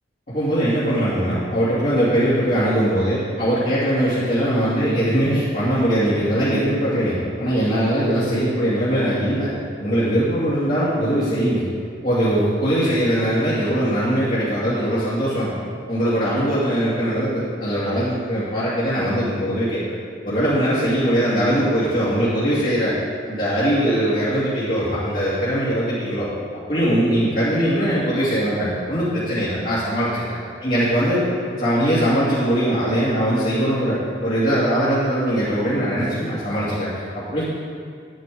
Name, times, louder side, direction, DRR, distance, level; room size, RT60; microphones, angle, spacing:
voice 1, 0.3-9.5 9.8-11.7 12.0-15.5 15.9-19.8 20.2-22.9 23.3-26.3 26.7-31.3 31.6-37.4, equal, 45° left, -12 dB, 2.7 m, -21 dB
10.5 x 10.5 x 3.9 m, 2.1 s
head